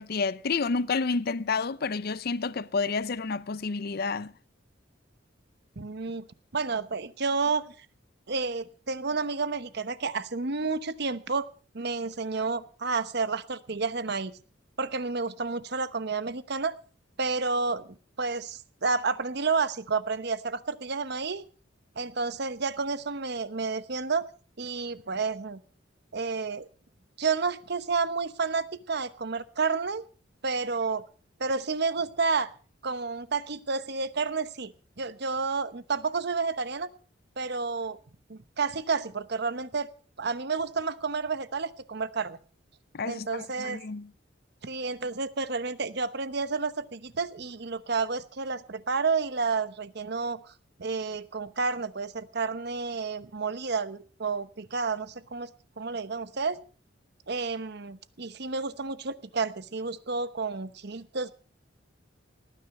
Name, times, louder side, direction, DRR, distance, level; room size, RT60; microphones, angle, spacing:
voice 1, 0.0-4.3 42.9-44.1, left 4 dB, 55° left, 0.6 m, -30 dB
voice 2, 5.8-6.2 6.5-7.9 8.3-11.5 11.7-14.3 14.8-16.7 17.2-21.5 22.0-24.3 24.6-25.6 26.1-26.7 27.2-30.0 30.4-31.0 31.4-32.5 32.8-36.9 37.4-38.0 38.3-39.9 40.2-42.4 43.0-43.8 44.6-50.5 50.8-55.5 55.8-56.6 57.3-61.3, right 4 dB, 60° right, 1.0 m, -30 dB
18.5 x 10.0 x 5.4 m
head